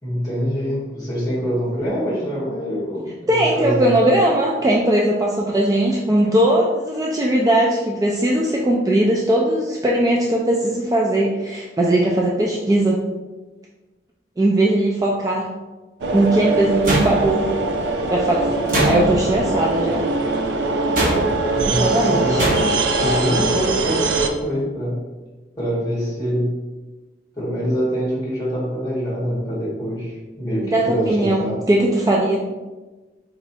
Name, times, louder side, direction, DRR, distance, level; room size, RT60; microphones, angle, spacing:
voice 1, 0.0-4.1 21.4-22.4 23.0-25.0 25.6-26.6 27.3-31.6, equal, 20° left, -7 dB, 1.5 m, -25 dB
voice 2, 3.3-13.0 14.4-15.5 16.1-17.5 18.1-20.0 21.7-22.4 30.6-32.4, right 1 dB, 20° right, -3 dB, 0.3 m, -19 dB
sound 1, 16.0-24.3, right 3 dB, 85° right, 0.4 m, -22 dB
sound 2, 16.9-17.6 18.7-19.4 21.0-21.5 22.4-22.9, right 1 dB, 50° right, 0.9 m, -21 dB
4.1 x 3.1 x 2.7 m, 1.2 s
head